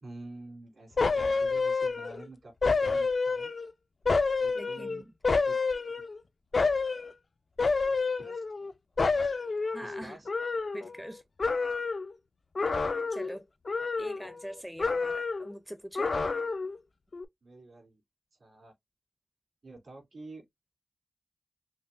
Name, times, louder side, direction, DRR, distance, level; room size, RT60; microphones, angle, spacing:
voice 1, 0.0-2.5 2.8-3.5 4.4-5.0 5.4-5.5 8.2-8.4 9.8-10.3 17.4-18.0 18.4-18.7 19.6-20.4, right 2 dB, 80° right, 2.8 m, -48 dB
sound 1, 1.0-2.2 2.6-3.7 4.1-6.2 6.5-7.1 7.6-8.7 9.0-11.1 11.4-12.1 12.5-13.4 13.7-14.5 14.8-15.5 15.9-16.8 17.1-17.2, left 4 dB, 60° left, 0.4 m, -29 dB
voice 2, 4.5-5.1 9.7-10.2 10.7-11.2 12.8-13.5 14.0-16.1, equal, 5° right, 0.5 m, -43 dB
5.5 x 2.1 x 2.5 m
wide cardioid pair, 85°, 0 cm